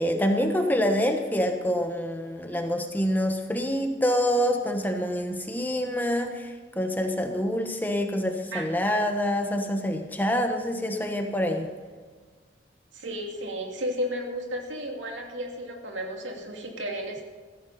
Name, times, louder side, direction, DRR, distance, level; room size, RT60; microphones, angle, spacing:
voice 1, 0.0-11.7, equal, 10° left, 4 dB, 1.1 m, -26 dB
voice 2, 8.5-9.0 12.9-17.2, equal, 85° right, 1 dB, 2.6 m, -33 dB
15.0 x 14.5 x 4.2 m, 1.5 s
head